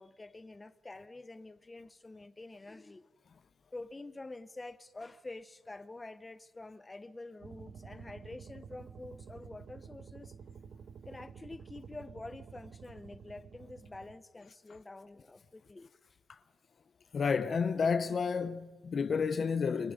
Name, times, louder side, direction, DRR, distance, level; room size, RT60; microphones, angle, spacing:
voice 1, 0.0-3.1 3.7-10.3 11.0-15.9, left 2 dB, 20° left, 1.0 m, -47 dB
sound 1, 7.4-14.2, right 6 dB, 55° right, 1.4 m, -51 dB
voice 2, 17.1-19.9, left 5 dB, 45° left, 0.7 m, -31 dB
29.0 x 22.5 x 5.2 m
cardioid pair, 90°, 0 cm